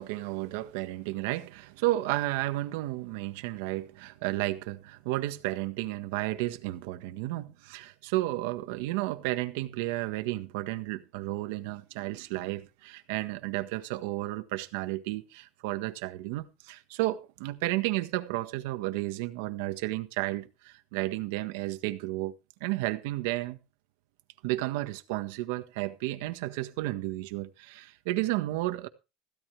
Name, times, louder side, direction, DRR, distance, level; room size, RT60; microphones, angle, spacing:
voice 1, 0.0-22.3 22.6-23.6 24.4-28.9, right 17 dB, 65° right, 1.5 m, -32 dB
15.5 x 12.5 x 3.4 m
cardioid pair, 180°, 0 cm